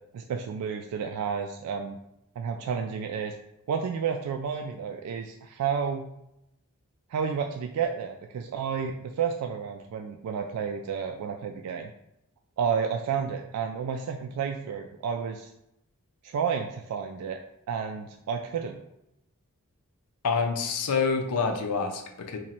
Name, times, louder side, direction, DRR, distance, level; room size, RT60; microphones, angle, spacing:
voice 1, 0.1-2.0 2.4-3.3 3.7-6.0 7.1-11.9 12.6-15.5 16.2-17.4 17.7-18.8, right 6 dB, 80° right, 4 dB, 0.3 m, -31 dB
voice 2, 20.2-22.4, left 5 dB, 85° left, 5 dB, 0.5 m, -27 dB
2.9 x 2.6 x 4.2 m, 0.82 s
head